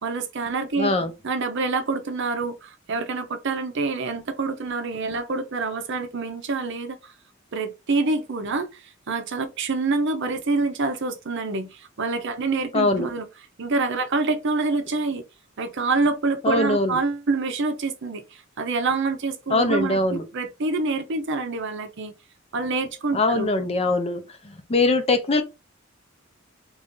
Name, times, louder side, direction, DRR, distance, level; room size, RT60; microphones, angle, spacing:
voice 1, 0.0-0.9 1.2-7.1 7.5-8.8 9.1-13.2 13.6-15.2 15.6-22.1 22.5-23.5, right 3 dB, 60° right, 0.7 m, -26 dB
voice 2, 0.8-1.1 12.7-13.1 16.4-17.0 19.5-20.2 23.1-24.2 24.7-25.4, left 2 dB, 30° left, 0.6 m, -21 dB
3.1 x 2.6 x 3.6 m
head